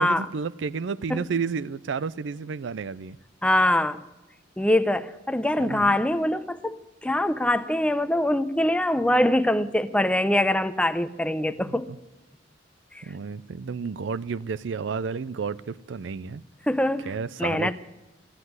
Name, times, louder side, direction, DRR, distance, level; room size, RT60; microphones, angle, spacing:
voice 1, 0.0-3.2 5.6-5.9 11.7-11.8 13.0-16.4 17.1-17.7, right 5 dB, 80° right, 0.4 m, -31 dB
voice 2, 3.4-4.0 4.6-11.9 12.9-13.0 16.7-17.1 17.4-17.7, left 1 dB, 5° left, 0.6 m, -23 dB
15.0 x 9.7 x 9.4 m
head